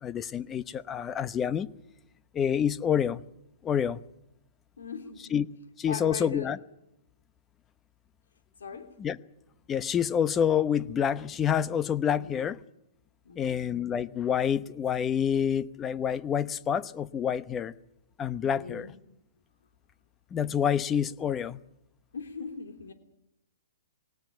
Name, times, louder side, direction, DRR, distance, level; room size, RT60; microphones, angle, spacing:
voice 1, 0.0-1.7 2.3-3.2 3.6-4.0 5.3-5.5 5.8-6.6 9.0-9.2 9.7-12.6 13.4-17.7 18.2-18.9 20.3-21.6, left 8 dB, 20° left, 0.8 m, -27 dB
voice 2, 4.8-5.3 5.9-6.5 8.6-8.9 12.2-12.4 13.2-13.6 18.4-18.9 22.1-22.9, left 5 dB, 80° left, 3.0 m, -39 dB
21.0 x 18.0 x 9.1 m
hypercardioid pair, 135°, 0 cm